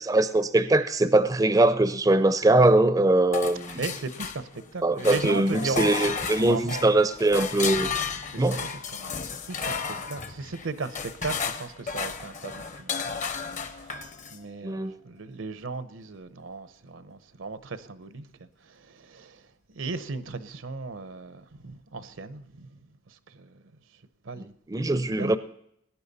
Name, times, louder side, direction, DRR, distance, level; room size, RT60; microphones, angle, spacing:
voice 1, 0.0-3.8 4.8-7.9 8.4-8.6 14.6-15.0 24.4-25.4, right 2 dB, 20° right, 0.4 m, -22 dB
sound 1, 3.3-4.7 5.0-14.4, left 5 dB, 40° left, 0.7 m, -33 dB
voice 2, 3.8-7.1 8.3-22.8 23.1-23.6 24.2-25.4, right 4 dB, 80° right, 0.8 m, -37 dB
19.0 x 10.0 x 4.1 m
head